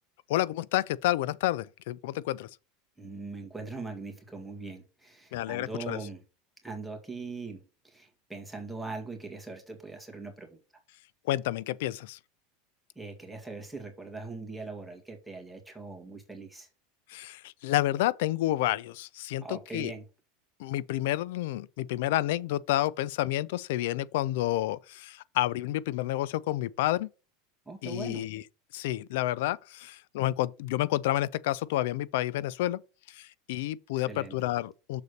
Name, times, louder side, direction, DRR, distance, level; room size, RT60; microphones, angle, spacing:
voice 1, 0.3-2.5 5.3-6.0 11.3-12.2 17.1-19.9 20.6-27.1 27.8-28.4 28.7-32.8 33.1-35.0, left 15 dB, 75° left, 0.4 m, -30 dB
voice 2, 3.0-6.2 6.6-10.5 13.0-16.7 19.4-20.0 27.7-28.3 34.0-34.4, right 3 dB, ahead, 2.1 m, -41 dB
6.7 x 4.0 x 6.5 m
supercardioid pair, 135°, 0 cm